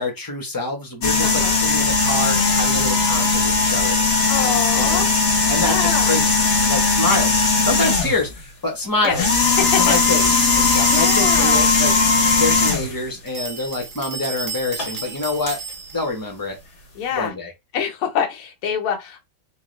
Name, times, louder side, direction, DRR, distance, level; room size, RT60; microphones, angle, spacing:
voice 1, 0.0-4.0 4.4-5.1 5.5-9.2 9.6-12.0 12.4-15.6 15.9-16.6 17.1-17.5, left 2 dB, 20° left, 0.6 m, -26 dB
sound 1, 1.0-8.3 9.0-13.0 14.8-15.0 15.5-15.6, left 4 dB, 45° left, 1.0 m, -18 dB
voice 2, 1.2-1.6 4.3-5.1 5.6-6.2 9.0-9.3 9.7-10.0 10.7-11.7 17.0-17.3 17.7-19.2, left 7 dB, 85° left, 1.9 m, -25 dB
sound 2, 9.8-11.8 13.3-16.1, right 5 dB, 65° right, 0.8 m, -32 dB
4.6 x 2.4 x 3.3 m
omnidirectional pair, 2.4 m